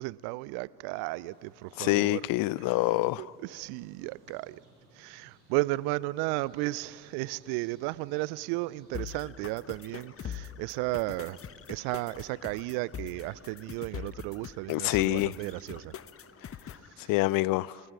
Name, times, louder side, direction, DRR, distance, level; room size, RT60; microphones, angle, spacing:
voice 1, 0.0-2.3 2.6-2.8 3.2-4.6 5.0-11.4 11.7-15.9 17.0-17.1, right 21 dB, 60° right, 0.6 m, -34 dB
sound 1, 1.0-13.6, right 2 dB, 85° right, 5.7 m, -61 dB
voice 2, 1.8-3.2 14.7-15.3 17.1-17.8, left 20 dB, 50° left, 0.5 m, -26 dB
sound 2, 8.9-16.9, left 8 dB, 30° left, 0.9 m, -43 dB
29.0 x 29.0 x 4.8 m
figure-of-eight pair, 50°, 43 cm